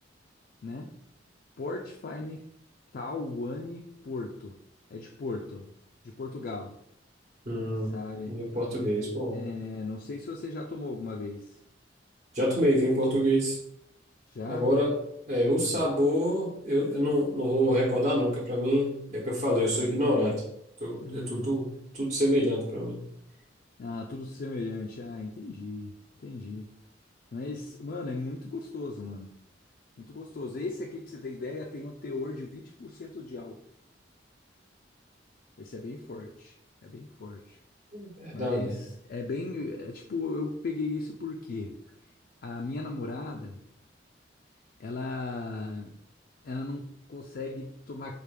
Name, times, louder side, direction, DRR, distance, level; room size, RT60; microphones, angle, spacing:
voice 1, 0.6-0.9 1.6-2.4 2.9-4.6 4.9-5.7 6.0-6.7 7.9-8.4 8.7-8.9 9.3-11.6 14.3-14.7 15.6-15.9 21.0-21.5 23.8-25.9 26.2-26.7 27.3-29.3 30.0-33.6 35.6-36.5 36.8-37.6 38.3-41.7 42.4-43.6 44.8-45.9 46.4-48.1, left 3 dB, 55° left, 2 dB, 0.4 m, -37 dB
voice 2, 7.4-7.9 8.3-9.4 12.3-13.6 14.5-14.9 15.3-20.4 20.8-23.0 37.9-38.7, equal, 40° right, -5 dB, 1.0 m, -27 dB
4.7 x 2.4 x 3.3 m, 0.74 s
head